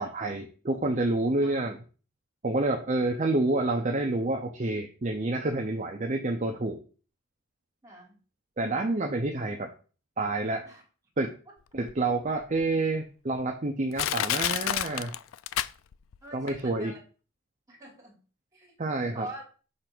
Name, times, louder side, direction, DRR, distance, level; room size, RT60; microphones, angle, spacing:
voice 1, 0.0-1.7 2.4-6.8 8.6-9.7 10.2-10.6 11.2-11.3 11.7-15.1 16.3-16.9 18.8-19.3, right 2 dB, 35° right, 3 dB, 0.7 m, -28 dB
voice 2, 7.8-8.2 10.6-10.8 11.5-11.6 16.2-17.0 17.7-18.2 18.5-18.8 19.1-19.4, right 1 dB, 15° right, -1 dB, 2.4 m, -44 dB
Crushing, 11.9-12.0 12.6-12.7 13.4-13.5 14.0-16.2 16.5-16.6, left 11 dB, 70° left, 0.4 m, -29 dB
6.6 x 3.4 x 6.0 m, 0.37 s
head